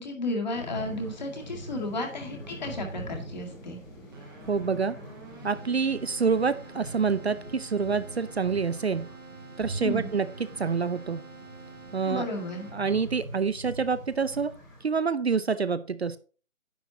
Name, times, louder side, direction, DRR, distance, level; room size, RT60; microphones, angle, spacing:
voice 1, 0.0-3.8 9.8-10.1 12.0-12.7, left 2 dB, 35° left, 1 dB, 2.1 m, -33 dB
sound 1, 0.5-14.8, right 1 dB, 10° left, 1.9 m, -43 dB
Keyboard (musical), 4.1-13.1, right 3 dB, 15° right, 1.4 m, -48 dB
voice 2, 4.5-5.0 5.4-9.1 9.6-10.3 10.6-11.2 11.9-12.2 12.7-14.5 14.8-16.2, right 5 dB, 55° right, 15 dB, 0.6 m, -27 dB
10.0 x 8.2 x 2.9 m, 0.37 s
hypercardioid pair, 175°, 39 cm